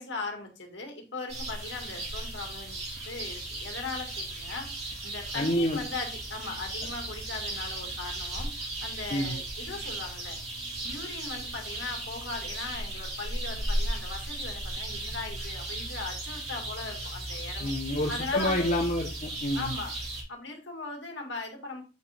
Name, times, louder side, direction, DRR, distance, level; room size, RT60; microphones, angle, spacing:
voice 1, 0.0-2.8 3.1-4.7 5.0-8.5 8.8-10.4 10.8-17.8 18.1-18.7 19.5-20.0 20.3-21.8, left 3 dB, 65° left, 2 dB, 2.1 m, -39 dB
sound 1, 1.3-20.2, right 1 dB, 35° right, 2.4 m, -36 dB
voice 2, 5.3-5.8 9.1-9.3 17.6-19.7, left 1 dB, 40° left, -1 dB, 1.1 m, -28 dB
7.9 x 4.6 x 3.6 m, 0.32 s
head